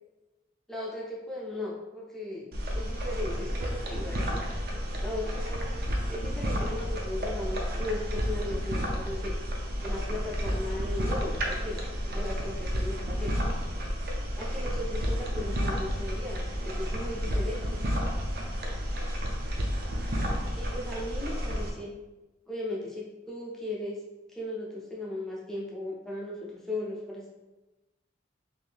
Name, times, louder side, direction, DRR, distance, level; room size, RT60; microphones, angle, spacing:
voice 1, 0.7-2.5 2.7-4.4 5.0-5.8 6.1-9.4 9.8-13.3 14.4-17.8 20.6-21.9 22.5-24.0 24.3-27.3, left 1 dB, 5° left, -5 dB, 0.5 m, -37 dB
sound 1, 2.5-21.7, equal, 55° right, 0.5 m, -31 dB
2.6 x 2.6 x 3.4 m, 1.1 s
head